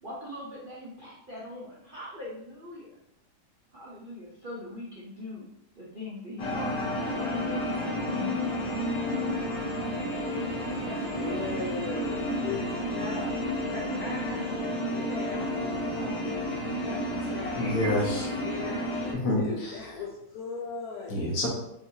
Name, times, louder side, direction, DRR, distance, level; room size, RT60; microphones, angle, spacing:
voice 1, 0.0-2.9 3.7-5.4 5.7-7.7 8.1-8.6, left 1 dB, 60° right, -5 dB, 0.5 m, -41 dB
sound 1, 6.4-19.1, left 1 dB, 65° left, 1.6 m, -31 dB
voice 2, 10.8-13.4 13.7-16.5 16.8-17.8 18.4-21.2, left 4 dB, 85° left, -2 dB, 0.8 m, -39 dB
voice 3, 17.2-18.4 19.1-19.9 21.1-21.5, left 1 dB, 50° left, -3 dB, 1.3 m, -29 dB
5.5 x 3.1 x 2.7 m, 0.81 s
omnidirectional pair, 2.2 m